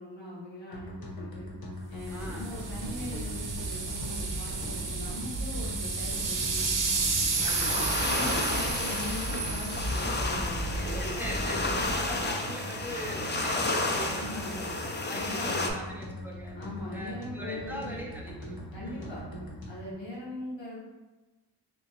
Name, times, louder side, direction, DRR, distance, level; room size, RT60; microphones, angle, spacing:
voice 1, 0.0-1.5 1.9-7.0 7.6-10.8 11.4-11.7 14.1-14.5 15.1-15.7 16.5-18.0 18.7-19.3 19.7-20.8, left 2 dB, 90° left, -7 dB, 1.2 m, -41 dB
sound 1, 0.7-19.9, equal, 55° left, 0.8 m, -41 dB
sound 2, 2.0-12.3, right 3 dB, 50° right, 0.6 m, -32 dB
voice 2, 2.1-2.5 7.4-8.1 10.7-14.7 15.0-16.6 16.9-19.2, right 1 dB, 5° right, -3 dB, 0.7 m, -41 dB
sound 3, 7.4-15.7, left 2 dB, 25° left, 0.4 m, -32 dB
3.4 x 2.9 x 3.0 m, 1.2 s
wide cardioid pair, 70°, 43 cm